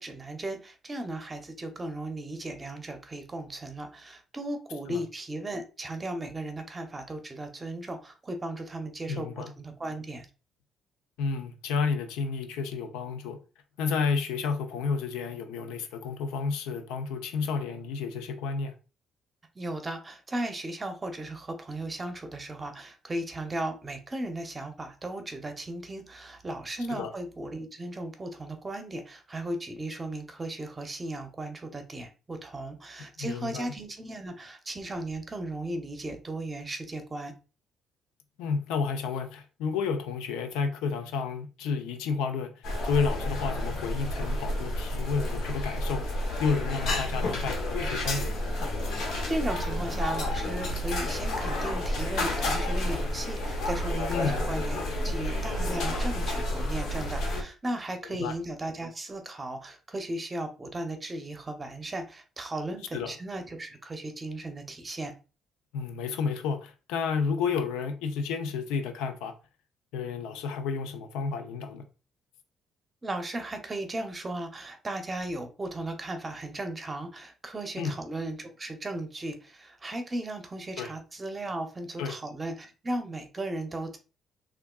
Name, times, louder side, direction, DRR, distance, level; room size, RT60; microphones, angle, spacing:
voice 1, 0.0-10.3 19.6-37.3 49.3-54.8 55.0-65.1 73.0-84.0, right 1 dB, 25° right, 0.7 m, -36 dB
voice 2, 9.1-9.5 11.2-13.4 13.8-18.7 26.9-27.1 33.0-33.7 38.4-46.1 46.4-48.4 54.1-54.4 58.0-58.3 62.9-63.1 65.7-69.3 69.9-71.8 77.8-78.0 80.8-80.9 82.0-82.2, left 5 dB, 90° left, 0.5 m, -31 dB
sound 1, 42.6-57.4, left 1 dB, 75° left, 0.9 m, -30 dB
3.5 x 2.4 x 2.3 m
supercardioid pair, 70°, 0 cm